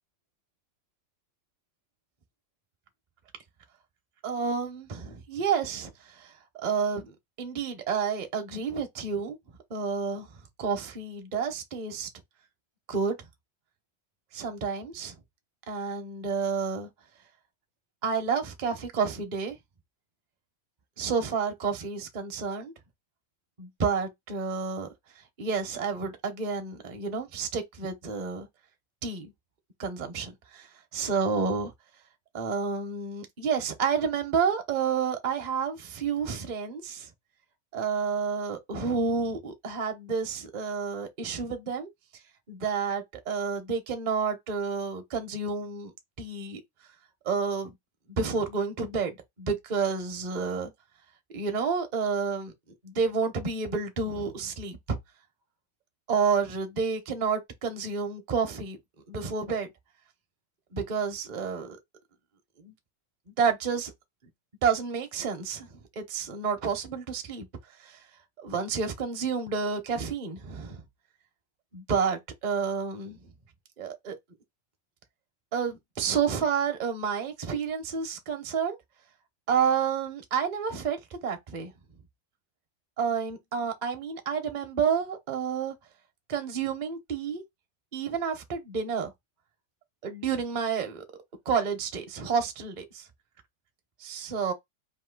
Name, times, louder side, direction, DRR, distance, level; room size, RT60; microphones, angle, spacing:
voice 1, 4.2-9.4 9.7-10.3 10.6-12.1 12.9-13.2 14.3-15.1 15.7-16.9 18.0-19.6 21.0-22.7 23.6-24.9 25.4-28.5 29.0-29.3 29.8-30.7 30.9-31.7 32.3-37.1 37.7-41.9 42.5-45.9 46.2-46.6 47.2-47.7 48.1-50.7 51.3-52.5 52.8-55.0 56.1-58.8 59.1-59.7 60.7-61.8 62.6-62.7 63.4-63.9 64.6-65.7 66.0-67.5 67.8-68.0 68.4-70.8 71.7-73.2 73.8-74.2 75.5-78.8 79.5-81.7 83.0-85.7 86.3-87.4 87.9-89.1 90.0-91.0 91.5-93.1 94.0-94.5, right 6 dB, 45° right, 0.6 m, -30 dB
4.2 x 2.7 x 3.7 m
omnidirectional pair, 2.0 m